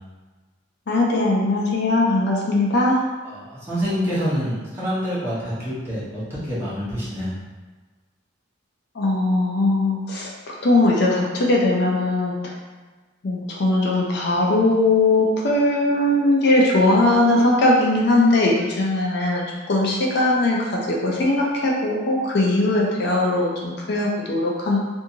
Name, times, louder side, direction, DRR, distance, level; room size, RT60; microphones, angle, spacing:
voice 1, 0.9-3.0 8.9-12.5 13.2-24.8, left 2 dB, 55° left, -2 dB, 0.4 m, -20 dB
voice 2, 3.2-7.3, equal, 10° right, -10 dB, 0.9 m, -26 dB
2.7 x 2.6 x 2.6 m, 1.3 s
head